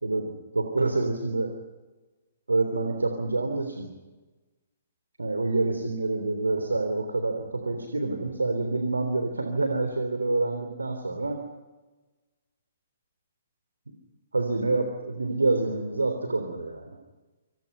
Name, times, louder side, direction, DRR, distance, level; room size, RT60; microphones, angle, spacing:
voice 1, 0.0-1.5 2.5-3.9 5.2-11.4 14.3-17.0, right 3 dB, 80° right, 6 dB, 3.5 m, -27 dB
27.0 x 27.0 x 5.6 m, 1.2 s
figure-of-eight pair, 120°, 0 cm